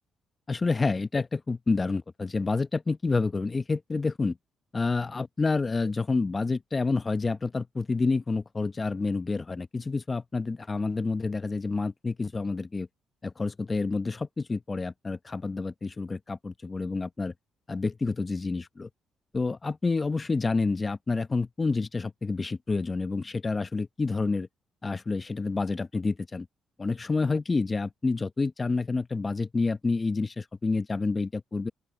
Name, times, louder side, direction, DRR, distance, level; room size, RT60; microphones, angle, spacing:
voice 1, 0.5-4.4 4.7-12.9 13.2-17.3 17.7-18.9 19.3-24.5 24.8-26.5 26.8-31.7, left 3 dB, 25° left, 1.0 m, -28 dB
open air
cardioid pair, 90°, 0 cm